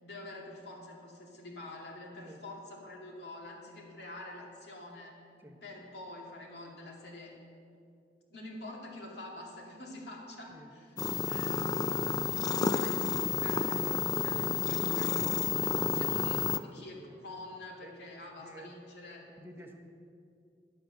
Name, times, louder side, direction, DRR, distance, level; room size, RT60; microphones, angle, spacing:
voice 1, 0.0-5.2 5.6-7.4 8.3-11.0 11.3-12.0 12.4-19.3, left 2 dB, 70° left, -2 dB, 2.6 m, -46 dB
voice 2, 10.5-11.1 17.0-17.2 17.8-18.7 19.3-19.8, right 1 dB, 15° right, 1 dB, 0.9 m, -52 dB
sound 1, 11.0-16.6, left 6 dB, 20° left, 0.4 m, -30 dB
11.5 x 9.9 x 6.5 m, 2.4 s
head